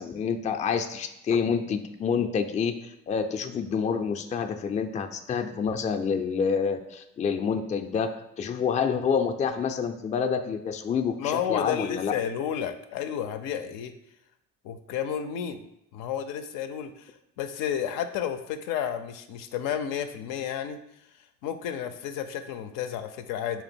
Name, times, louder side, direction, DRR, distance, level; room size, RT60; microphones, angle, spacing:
voice 1, 0.0-12.1, left 6 dB, 25° left, 7 dB, 0.3 m, -28 dB
voice 2, 11.2-13.9 14.6-15.7 15.9-20.8 21.4-23.6, left 9 dB, 80° left, 9 dB, 0.5 m, -31 dB
3.5 x 3.0 x 4.3 m, 0.84 s
supercardioid pair, 75°, 33 cm